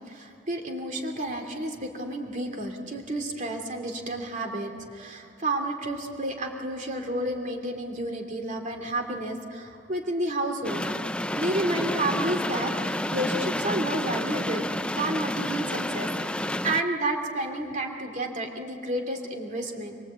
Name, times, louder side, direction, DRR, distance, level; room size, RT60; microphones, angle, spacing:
voice 1, 0.1-10.8 11.4-14.6 14.9-20.0, right 1 dB, 40° right, 3 dB, 2.8 m, -31 dB
sound 1, 10.6-16.8, left 1 dB, 5° left, 0.5 m, -30 dB
26.0 x 23.5 x 8.2 m, 2.7 s
head